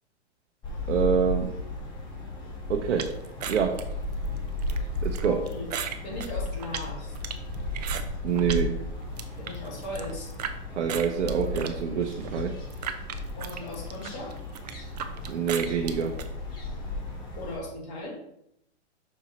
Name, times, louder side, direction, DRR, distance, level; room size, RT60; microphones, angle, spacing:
sound 1, 0.6-17.6, left 2 dB, 10° left, 1.1 m, -35 dB
voice 1, 0.9-1.6 2.7-3.9 5.0-5.4 8.2-8.8 10.8-12.6 15.3-16.2, right 7 dB, 75° right, 4 dB, 0.9 m, -27 dB
sound 2, 3.0-8.6 9.0-10.5 10.9-16.3, right 8 dB, 35° right, 0.5 m, -37 dB
voice 2, 5.2-5.7 6.0-7.2 9.4-10.3 13.4-14.4 17.4-18.2, left 1 dB, 40° left, -3 dB, 2.7 m, -38 dB
6.3 x 4.6 x 4.1 m, 0.76 s
hypercardioid pair, 165°, 35 cm